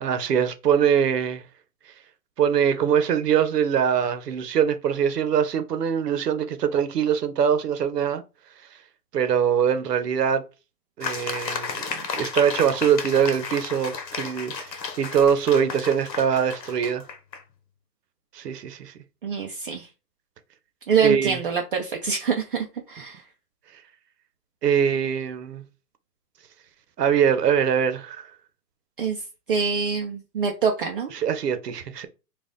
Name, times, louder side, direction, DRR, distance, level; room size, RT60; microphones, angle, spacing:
voice 1, 0.0-1.4 2.4-8.2 9.1-10.4 11.0-17.0 18.3-18.9 21.0-21.4 24.6-25.6 27.0-28.3 31.1-32.1, right 8 dB, 75° right, 0.9 m, -23 dB
sound 1, 11.0-17.4, left 5 dB, 85° left, 1.1 m, -33 dB
voice 2, 19.2-19.9 20.9-22.6 22.9-23.2 29.0-29.2 29.5-31.1, right 6 dB, 35° right, 0.5 m, -25 dB
4.2 x 2.5 x 3.6 m
hypercardioid pair, 145°, 49 cm